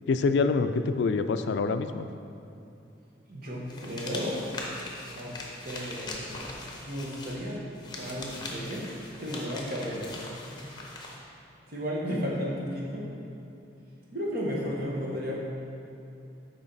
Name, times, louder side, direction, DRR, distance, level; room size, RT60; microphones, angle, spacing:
voice 1, 0.1-2.1, left 4 dB, 70° left, 10 dB, 0.3 m, -26 dB
voice 2, 3.3-4.4 5.1-5.3 5.6-6.3 6.8-7.6 8.0-8.8 9.2-10.2 10.5-10.7 11.7-13.0 14.1-15.4, equal, 55° right, -4 dB, 1.4 m, -33 dB
sound 1, 3.7-11.2, left 2 dB, 25° left, 0.8 m, -41 dB
7.2 x 5.1 x 4.0 m, 2.7 s
head